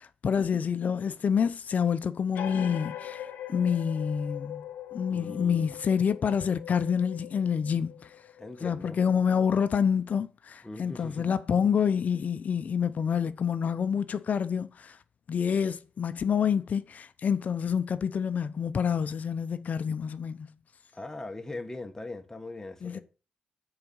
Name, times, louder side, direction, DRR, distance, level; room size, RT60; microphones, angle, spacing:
voice 1, 0.0-4.7 4.9-8.1 8.6-15.0 15.3-20.5 22.8-23.0, left 7 dB, 60° left, 0.6 m, -28 dB
sound 1, 2.3-9.6, left 11 dB, 85° left, 0.9 m, -42 dB
voice 2, 5.1-5.7 8.4-9.0 10.6-11.6 20.9-23.0, left 2 dB, 15° left, 1.5 m, -40 dB
6.8 x 4.8 x 7.0 m
cardioid pair, 75°, 3 cm